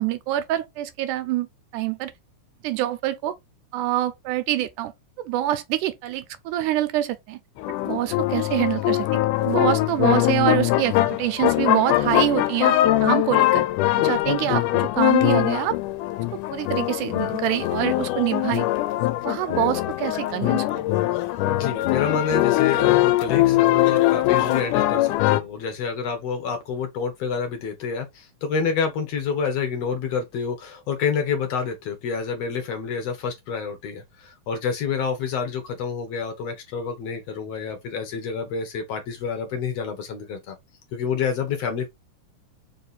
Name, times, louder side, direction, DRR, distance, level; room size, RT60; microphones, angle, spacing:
voice 1, 0.0-1.5 1.7-2.1 2.6-3.3 3.7-4.9 5.2-7.4 7.9-13.6 14.0-15.8 16.5-18.7 19.3-20.8, right 14 dB, 85° right, 2.2 m, -25 dB
sound 1, 7.6-25.4, left 16 dB, 90° left, 2.1 m, -22 dB
voice 2, 21.5-40.6 40.9-41.9, left 6 dB, 70° left, 1.8 m, -28 dB
4.9 x 2.7 x 3.9 m
omnidirectional pair, 3.5 m